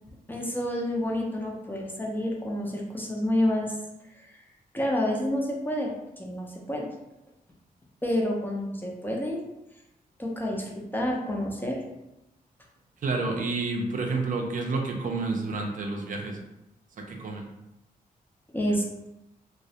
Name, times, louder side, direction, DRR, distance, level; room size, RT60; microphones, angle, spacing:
voice 1, 0.3-3.7 4.1-4.4 4.7-6.8 8.0-9.4 10.2-11.8 18.5-19.1, left 1 dB, 15° left, -1 dB, 0.4 m, -29 dB
voice 2, 13.0-16.4 17.0-17.5, right 3 dB, 60° right, 1 dB, 0.4 m, -29 dB
2.3 x 2.0 x 2.7 m, 0.91 s
cardioid pair, 100°, 15 cm